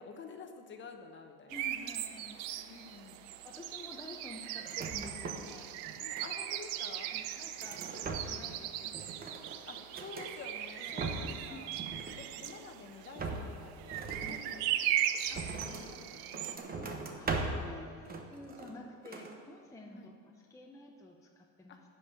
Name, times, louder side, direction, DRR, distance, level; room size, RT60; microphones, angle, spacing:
voice 1, 0.0-1.6 2.6-3.3 6.0-7.1 9.7-11.8 12.2-15.0 15.6-16.8 19.9-20.1 21.7-21.8, left 4 dB, 30° left, 5 dB, 1.1 m, -50 dB
voice 2, 1.5-2.8 3.4-5.8 7.1-9.7 10.8-11.2 11.5-11.6 15.3-15.7 16.8-21.8, left 2 dB, 10° left, 0 dB, 0.8 m, -51 dB
sound 1, 1.5-16.6, right 12 dB, 80° right, 0.7 m, -38 dB
sound 2, 4.6-5.6 5.8-6.6 7.1-8.6 8.9-10.3 10.7-11.5 11.8-12.7 13.2-15.9 16.3-17.7 18.1-18.8 19.1-19.4, right 3 dB, 25° right, 1.0 m, -40 dB
11.0 x 5.7 x 8.8 m, 2.2 s
cardioid pair, 125°, 36 cm